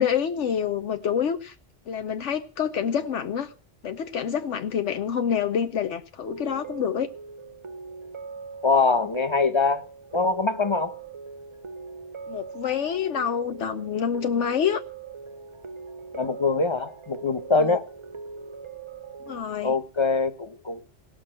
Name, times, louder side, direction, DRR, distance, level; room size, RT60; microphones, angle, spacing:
voice 1, 0.0-1.5 1.9-3.5 3.8-7.1 12.3-14.8 17.6-17.8 19.3-19.7, left 8 dB, 80° left, 1.1 m, -27 dB
sound 1, 6.2-19.4, right 4 dB, 30° right, 0.6 m, -41 dB
voice 2, 8.6-9.8 10.1-10.9 16.1-17.9 19.6-20.8, left 4 dB, 25° left, 0.9 m, -23 dB
17.0 x 6.3 x 7.6 m
omnidirectional pair, 1.2 m